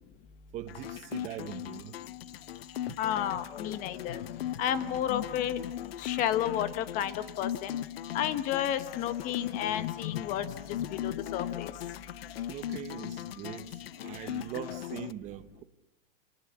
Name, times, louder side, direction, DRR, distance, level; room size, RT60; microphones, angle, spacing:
voice 1, 0.5-1.9 12.5-15.6, right 12 dB, 25° right, 1.2 m, -41 dB
sound 1, 0.7-15.1, left 12 dB, 80° left, 0.9 m, -38 dB
voice 2, 3.0-4.2 4.6-5.6 6.0-7.8 8.1-10.5 10.9-11.7, left 10 dB, 25° left, 1.3 m, -31 dB
29.5 x 20.0 x 7.2 m
supercardioid pair, 165°, 29 cm